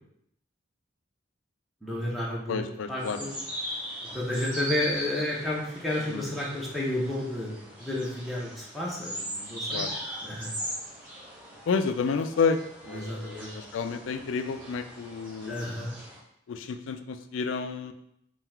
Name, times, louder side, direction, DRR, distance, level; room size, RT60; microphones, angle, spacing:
voice 1, 1.8-2.6 2.9-3.3 4.1-9.9 10.2-10.5 12.9-13.5 15.5-15.9, left 1 dB, ahead, -5 dB, 0.8 m, -31 dB
voice 2, 2.5-3.2 6.1-6.2 9.7-9.9 11.7-12.6 12.8-15.6 16.5-17.9, left 5 dB, 75° left, 9 dB, 0.3 m, -30 dB
sound 1, 3.0-16.2, equal, 25° right, 1.5 m, -39 dB
3.7 x 2.4 x 4.3 m, 0.75 s
head